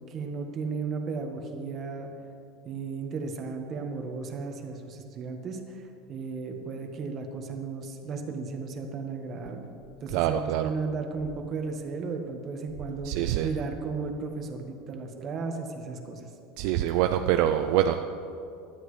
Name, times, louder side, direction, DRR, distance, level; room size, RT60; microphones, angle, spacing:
voice 1, 0.1-2.1 2.6-9.7 10.0-13.1 13.4-16.2, right 4 dB, 35° right, 4 dB, 1.5 m, -35 dB
voice 2, 10.1-10.7 13.0-13.5 16.6-17.9, right 11 dB, 60° right, 7 dB, 0.5 m, -25 dB
18.5 x 12.0 x 3.4 m, 2.6 s
supercardioid pair, 145°, 0 cm